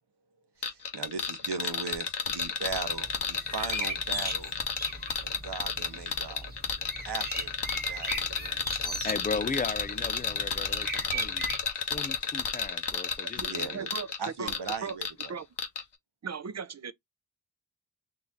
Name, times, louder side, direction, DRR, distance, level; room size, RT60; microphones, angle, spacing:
sound 1, 0.6-15.3 15.6-15.8, left 5 dB, 85° left, 0.9 m, -32 dB
voice 1, 0.6-4.5 5.2-6.5 7.0-9.1 13.4-13.9 14.2-15.4, right 5 dB, 75° right, 0.9 m, -39 dB
sound 2, 2.6-11.6, right 2 dB, 25° right, 1.3 m, -39 dB
voice 2, 9.0-11.4 11.7-13.8, left 4 dB, 20° left, 0.4 m, -36 dB
voice 3, 13.7-14.1 14.4-14.5 14.8-15.0 15.3-15.5 16.2-16.9, right 6 dB, 40° right, 0.6 m, -37 dB
3.9 x 2.8 x 3.5 m
wide cardioid pair, 45°, 40 cm